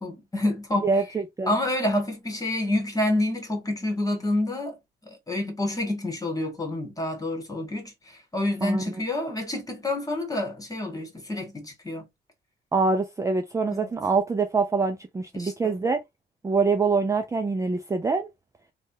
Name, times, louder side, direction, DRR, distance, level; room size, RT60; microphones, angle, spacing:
voice 1, 0.0-0.9 1.5-4.8 5.1-12.0 13.7-13.9 15.3-15.8, left 1 dB, 15° left, 1.5 m, -28 dB
voice 2, 0.8-1.5 8.6-8.8 12.7-16.0 16.4-18.3, right 4 dB, 15° right, 0.4 m, -25 dB
3.2 x 2.3 x 2.7 m
cardioid pair, 90°, 20 cm